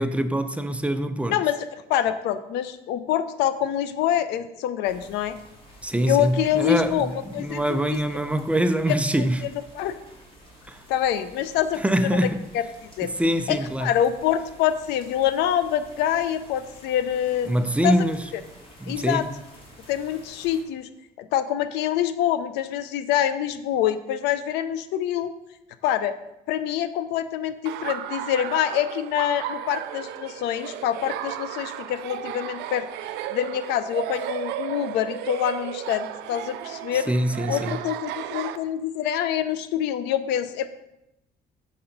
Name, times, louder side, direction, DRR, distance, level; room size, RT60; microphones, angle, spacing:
voice 1, 0.0-1.4 5.8-9.5 10.7-10.8 11.8-12.4 13.2-13.9 17.5-18.3 18.8-19.3 36.9-37.8, right 1 dB, 5° right, 0.4 m, -24 dB
voice 2, 1.9-5.4 6.1-8.0 8.9-9.2 9.7-10.0 10.9-11.8 12.5-12.6 13.0-13.1 13.5-17.5 17.8-18.1 18.9-19.2 19.9-20.9 21.2-25.3 25.8-26.2 26.5-32.9 33.3-37.1 37.5-40.7, left 10 dB, 90° left, 0.5 m, -25 dB
sound 1, 4.8-20.6, equal, 30° left, 2.0 m, -50 dB
Laughter, 27.6-38.6, right 12 dB, 85° right, 0.4 m, -34 dB
6.8 x 4.2 x 5.2 m
cardioid pair, 110°, 17 cm